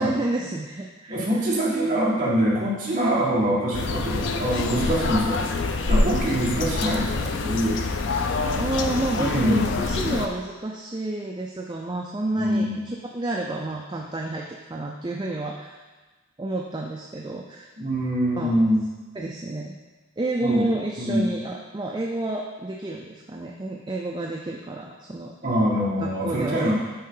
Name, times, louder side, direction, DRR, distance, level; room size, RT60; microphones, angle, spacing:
voice 1, 0.0-1.2 8.6-15.8 16.4-17.7 18.4-18.6 19.2-19.8 20.2-25.3 26.0-26.7, right 2 dB, 20° right, -1 dB, 0.4 m, -30 dB
voice 2, 1.1-5.4 5.9-7.8 9.1-9.7 12.3-12.8 17.8-18.8 20.4-20.7 21.0-21.3 25.4-26.7, equal, 35° right, -6 dB, 1.8 m, -24 dB
sound 1, 3.7-10.3, left 3 dB, 60° left, 0.5 m, -26 dB
9.6 x 3.7 x 3.9 m, 1.3 s
head